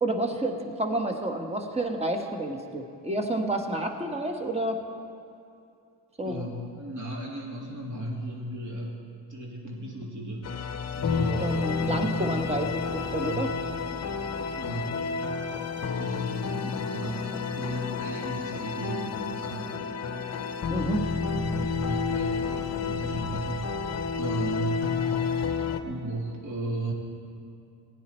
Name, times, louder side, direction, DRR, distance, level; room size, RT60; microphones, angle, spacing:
voice 1, 0.0-4.8 6.2-6.5 11.4-13.5 20.7-21.0, right 1 dB, 15° right, 4 dB, 1.4 m, -29 dB
voice 2, 6.2-9.0 9.3-10.5 10.9-12.8 13.2-13.5 14.6-15.1 16.0-17.2 17.5-19.9 21.0-23.7 24.1-24.9 25.8-26.9, right 2 dB, 45° right, -2 dB, 2.8 m, -35 dB
sound 1, 10.4-25.8, left 5 dB, 35° left, 0.8 m, -30 dB
16.5 x 9.7 x 4.4 m, 2.5 s
cardioid pair, 85°, 44 cm